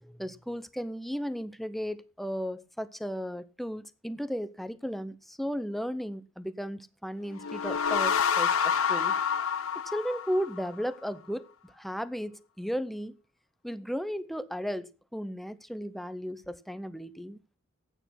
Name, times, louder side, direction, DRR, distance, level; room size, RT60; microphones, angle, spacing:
voice 1, 0.0-9.2 9.7-13.2 13.6-17.4, equal, ahead, 0.7 m, -35 dB
sound 1, 7.3-10.8, left 7 dB, 80° left, 0.8 m, -28 dB
12.5 x 9.1 x 5.8 m
head